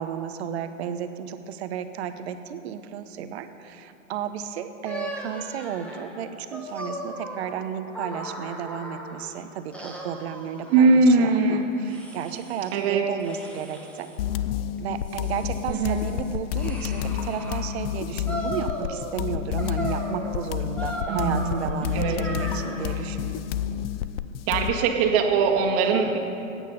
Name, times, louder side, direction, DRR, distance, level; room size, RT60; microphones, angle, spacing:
voice 1, 0.0-14.1 14.8-23.5, right 8 dB, 50° right, 9 dB, 1.0 m, -33 dB
sound 1, 4.8-9.3 9.7-11.3 11.9-12.8 13.2-14.2 14.8-17.7 18.3-19.2 19.6-23.0, equal, 5° left, 1.7 m, -37 dB
voice 2, 10.7-11.6 12.7-13.0 15.7-16.0 21.1-22.2 24.5-26.2, right 4 dB, 35° right, 1 dB, 1.9 m, -21 dB
sound 2, 14.2-24.8, left 10 dB, 45° left, 0.6 m, -30 dB
17.0 x 9.1 x 5.4 m, 2.8 s
hypercardioid pair, 110°, 40 cm